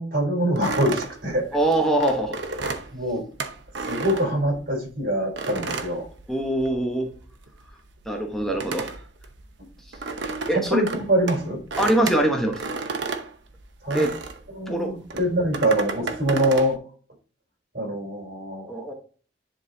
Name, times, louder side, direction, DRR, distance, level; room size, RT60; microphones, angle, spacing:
voice 1, 0.0-1.6 2.9-3.2 3.9-6.1 8.5-8.6 10.5-11.6 13.8-14.0 14.5-16.8 17.7-18.9, right 1 dB, 55° right, 1 dB, 3.5 m, -24 dB
sound 1, 0.6-4.9 5.4-6.8 7.1-14.5 15.1-16.7, right 4 dB, 80° right, 0.9 m, -32 dB
voice 2, 1.5-2.3 6.3-7.1 8.1-8.9 10.5-10.8 11.8-12.6 13.9-14.1 14.7-14.9 18.7-18.9, right 1 dB, ahead, 1 dB, 1.0 m, -23 dB
10.5 x 3.9 x 2.7 m, 0.40 s
head